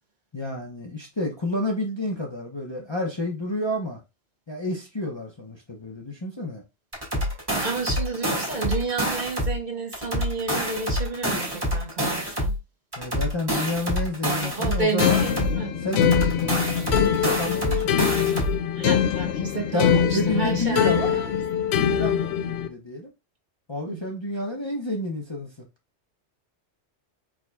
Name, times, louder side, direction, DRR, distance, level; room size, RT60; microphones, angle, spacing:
voice 1, 0.3-4.0 4.5-6.6 13.0-15.2 15.8-18.0 18.8-18.9 19.7-21.1 21.7-23.1 23.7-25.7, left 1 dB, 25° left, 0.8 m, -30 dB
sound 1, 6.9-9.6 9.9-12.6 12.9-15.6 15.9-18.6, equal, 20° right, 2.2 m, -27 dB
voice 2, 7.6-12.5 14.4-15.8 18.7-21.4 23.9-24.0, right 3 dB, 45° right, 1.1 m, -31 dB
sound 2, 15.0-22.7, left 8 dB, 70° left, 0.8 m, -23 dB
4.9 x 4.1 x 2.2 m
omnidirectional pair, 1.2 m